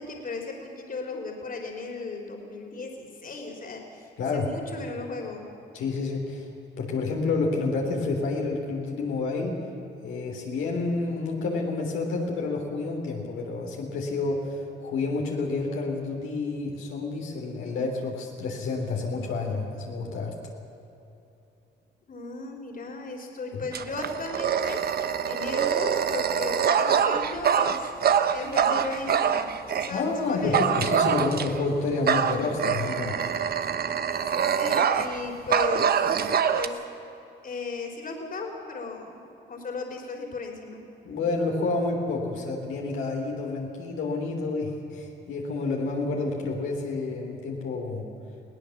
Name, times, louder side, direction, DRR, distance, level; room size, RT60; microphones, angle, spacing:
voice 1, 0.0-5.4 22.1-24.8 25.3-27.9 28.3-30.6 34.3-36.1 36.5-36.8 37.4-40.8, left 3 dB, 45° left, 2 dB, 3.7 m, -36 dB
voice 2, 4.2-4.5 5.7-6.5 6.8-9.6 10.0-20.3 29.9-33.2 41.0-48.1, left 3 dB, 80° left, -1 dB, 3.3 m, -29 dB
Dog, 23.7-29.9 30.5-31.6 32.1-35.2 35.5-36.7, right 7 dB, 50° right, 1.1 m, -25 dB
21.0 x 18.0 x 7.2 m, 2.9 s
cardioid pair, 90°, 20 cm